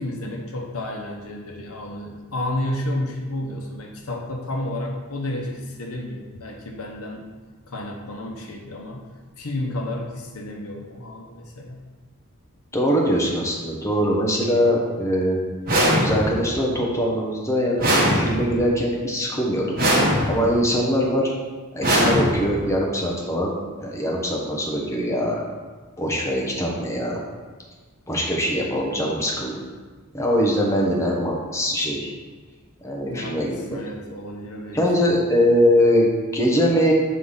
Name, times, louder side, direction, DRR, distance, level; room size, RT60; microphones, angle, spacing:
voice 1, 0.0-7.2 7.7-9.1 9.4-11.8 33.0-35.2, left 1 dB, 85° left, 1 dB, 0.9 m, -31 dB
voice 2, 12.7-15.4 16.0-19.7 20.3-21.3 21.7-23.5 23.8-25.4 26.0-27.2 28.1-29.6 30.1-32.1 32.8-33.8 34.7-36.9, equal, 15° left, -3 dB, 0.9 m, -22 dB
sound 1, 15.7-16.5 17.8-18.7 19.8-20.6 21.8-22.7, equal, 40° right, 1.2 m, -20 dB
5.5 x 3.3 x 5.6 m, 1.4 s
head